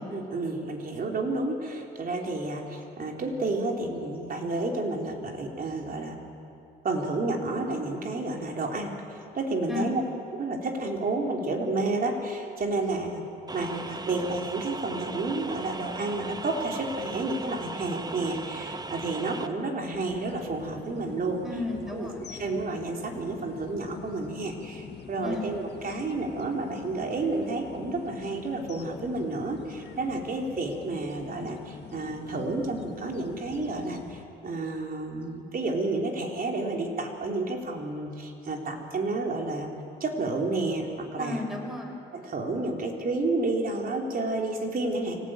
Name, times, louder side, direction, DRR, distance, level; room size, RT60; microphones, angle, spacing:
voice 1, 0.0-6.2 6.8-10.0 10.3-13.3 13.5-21.4 21.9-39.7 40.0-41.4 42.1-45.2, right 2 dB, 45° right, 1 dB, 3.9 m, -30 dB
sound 1, 13.5-19.5, right 3 dB, 20° right, 1.2 m, -38 dB
sound 2, 20.1-34.2, left 8 dB, 60° left, 1.5 m, -45 dB
voice 2, 21.4-22.2 25.2-25.5 41.2-42.0, left 2 dB, ahead, 2 dB, 5.5 m, -33 dB
24.5 x 18.0 x 9.2 m, 2.6 s
cardioid pair, 90°, 20 cm